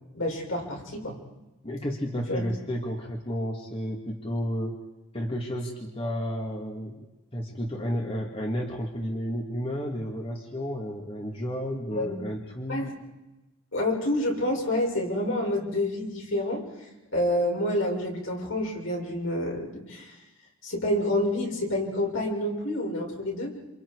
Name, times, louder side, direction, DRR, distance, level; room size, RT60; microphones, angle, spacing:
voice 1, 0.1-1.2 2.3-2.4 11.9-12.2 12.7-12.9 13.7-16.6 17.1-20.2 20.6-23.5, left 1 dB, 70° left, -1 dB, 6.9 m, -28 dB
voice 2, 1.6-4.7 5.1-7.0 7.3-12.9, equal, 25° left, 0 dB, 2.4 m, -32 dB
29.0 x 28.5 x 4.9 m, 1.0 s
head